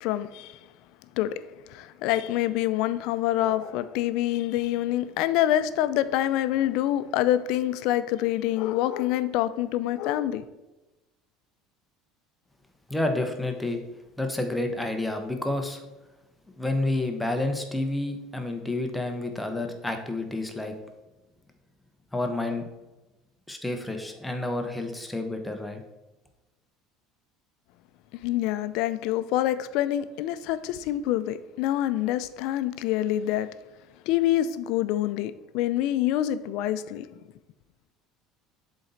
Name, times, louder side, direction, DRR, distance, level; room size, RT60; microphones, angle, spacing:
voice 1, 0.0-0.6 1.2-1.4 1.7-10.4 28.1-33.5 34.1-37.1, left 13 dB, 65° left, 0.4 m, -26 dB
voice 2, 12.9-13.8 14.2-15.8 16.6-20.7 22.1-22.7 23.5-25.8, left 2 dB, 5° left, 0.7 m, -29 dB
7.4 x 4.0 x 4.0 m
cardioid pair, 140°, 0 cm